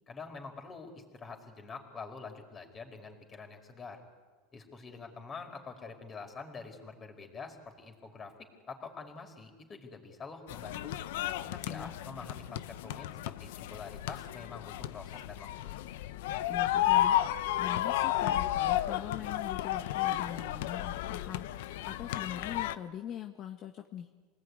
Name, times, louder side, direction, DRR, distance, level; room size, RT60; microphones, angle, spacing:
voice 1, 0.1-4.0 4.5-8.3 8.7-10.9 11.4-15.8, left 4 dB, 25° left, 4 dB, 4.9 m, -46 dB
sound 1, 10.5-22.7, left 13 dB, 75° left, 0.9 m, -32 dB
voice 2, 16.5-17.2 17.6-24.1, left 9 dB, 40° left, 5 dB, 1.5 m, -42 dB
28.5 x 19.5 x 9.8 m, 1.4 s
supercardioid pair, 130°, 0 cm